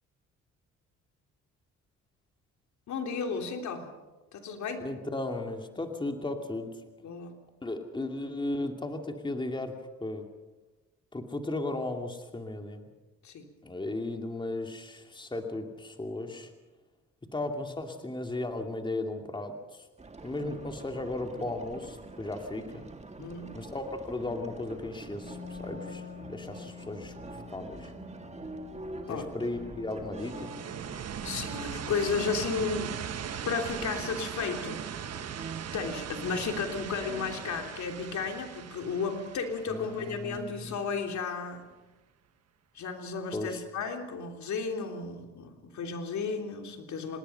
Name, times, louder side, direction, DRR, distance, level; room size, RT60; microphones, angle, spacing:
voice 1, 2.9-3.9 4.3-4.9 7.0-7.4 13.2-13.5 23.2-23.6 29.1-29.3 31.2-33.0 33.4-34.8 35.7-41.7 42.7-47.2, left 5 dB, 70° left, 4 dB, 3.2 m, -33 dB
voice 2, 4.8-6.7 7.6-10.2 11.1-12.9 13.6-16.5 17.3-19.8 20.2-22.8 23.5-26.0 26.3-27.9 29.1-30.5 39.7-40.8 43.3-43.6, left 2 dB, 15° left, 4 dB, 2.4 m, -35 dB
sound 1, 20.0-37.7, right 3 dB, 20° right, 2.1 m, -46 dB
Wind instrument woodwind instrument, 25.1-30.8, left 7 dB, 40° left, 5.1 m, -47 dB
sound 2, 30.2-40.9, right 8 dB, 55° right, 1.4 m, -39 dB
27.0 x 19.5 x 5.7 m, 1.2 s
cardioid pair, 90°, 30 cm